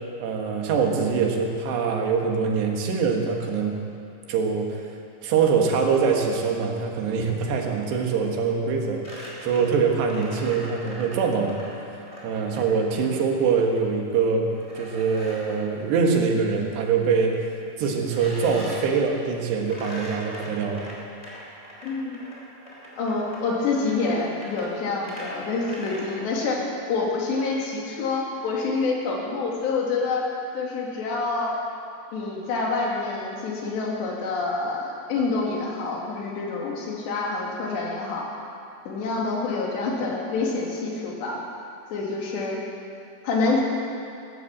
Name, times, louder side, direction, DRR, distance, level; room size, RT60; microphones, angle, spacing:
voice 1, 0.2-3.8 4.3-4.9 5.2-11.7 12.2-14.5 14.8-20.9, right 5 dB, 85° right, 1 dB, 3.8 m, -24 dB
sound 1, 9.0-13.3 14.5-15.7 18.0-19.0 19.6-26.1, equal, 10° left, 2.7 m, -41 dB
voice 2, 21.8-22.2 23.0-26.6 26.9-30.2 30.5-31.5 32.1-38.3 38.9-41.4 41.9-42.6 43.2-43.6, left 3 dB, 85° left, -3 dB, 4.7 m, -27 dB
15.5 x 12.5 x 7.3 m, 2.6 s
omnidirectional pair, 4.8 m